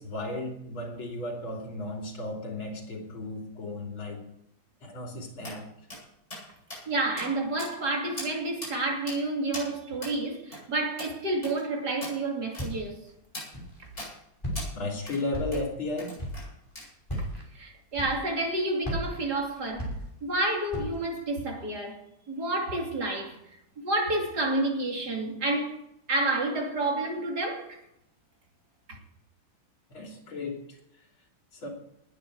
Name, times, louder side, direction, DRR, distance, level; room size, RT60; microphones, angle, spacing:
voice 1, 0.0-4.2 4.8-5.7 14.7-16.1 29.9-30.7 31.5-31.7, left 2 dB, 85° left, 3.9 m, -34 dB
sound 1, 5.4-5.6 5.9-6.0 6.3-6.5 6.7-6.8 7.2-7.3 7.6-7.9 8.2-8.3 8.6-8.7 9.1-9.2 9.5-9.7 10.0-10.2 10.5-10.6 11.0-11.1 11.4-11.6 12.0-12.2 12.5-12.7 13.3-13.5 14.0-14.1 14.6-14.7 15.1-15.2 15.5-15.6 16.0-16.5 16.8-17.2, left 1 dB, 35° left, 7.9 m, -39 dB
voice 2, 6.9-13.0 17.5-19.9 20.2-22.0 22.3-23.4 23.8-27.8 28.9-29.0, right 2 dB, 55° right, 3.3 m, -29 dB
Walk footsteps, 12.6-13.0 13.5-14.1 14.4-14.9 15.3-15.8 16.2-16.5 17.0-17.4 17.9-18.5 18.8-20.4 20.7-21.1, equal, 10° left, 5.9 m, -35 dB
20.0 x 9.2 x 4.8 m
omnidirectional pair, 2.2 m